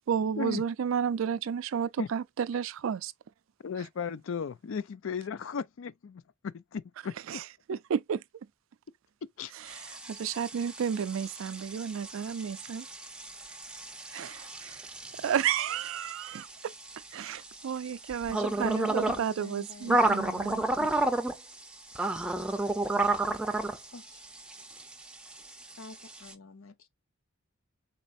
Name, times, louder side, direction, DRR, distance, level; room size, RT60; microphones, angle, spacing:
voice 1, 0.1-3.1 7.3-8.2 9.5-12.9 14.1-14.9 15.2-16.7 17.1-20.9, right 8 dB, 70° right, 0.3 m, -32 dB
voice 2, 3.6-6.2 6.5-7.4 9.4-9.5, left 6 dB, 70° left, 0.4 m, -35 dB
sound 1, 9.7-26.3, right 2 dB, 5° right, 0.5 m, -33 dB
voice 3, 18.2-20.7 23.9-24.3 25.8-26.9, left 3 dB, 85° left, 0.8 m, -48 dB
4.3 x 4.1 x 2.5 m
head